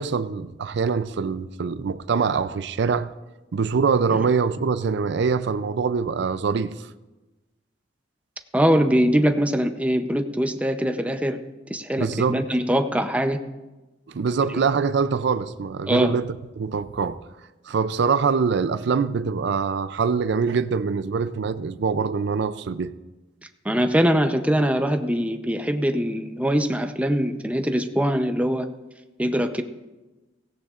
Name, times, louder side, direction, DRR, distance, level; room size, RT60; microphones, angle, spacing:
voice 1, 0.0-3.1 3.5-6.9 12.0-12.4 14.1-17.2 17.7-22.9, right 5 dB, 65° right, 0.4 m, -24 dB
voice 2, 8.5-11.4 11.7-13.4 15.9-16.1 23.6-28.7 29.2-29.6, equal, 10° right, 0.7 m, -22 dB
16.5 x 15.5 x 2.5 m
head